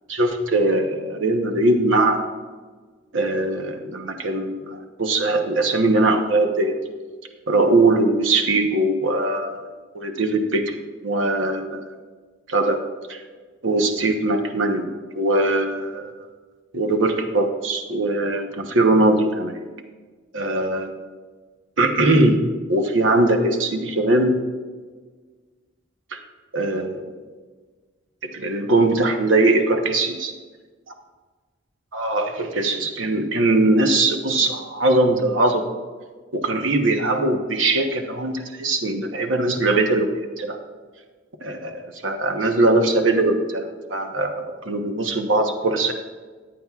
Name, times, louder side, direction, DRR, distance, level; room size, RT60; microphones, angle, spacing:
voice 1, 0.1-2.2 3.1-6.7 7.5-9.7 9.9-10.8 11.0-11.9 12.5-12.8 13.1-13.2 13.6-14.9 15.1-16.1 16.7-19.6 20.3-20.9 21.8-22.4 22.7-24.4 26.1-26.2 26.5-27.0 28.2-30.3 31.9-35.6 36.3-40.6 41.4-45.9, right 2 dB, 80° right, 5 dB, 1.0 m, -21 dB
15.0 x 9.5 x 2.4 m, 1.4 s
head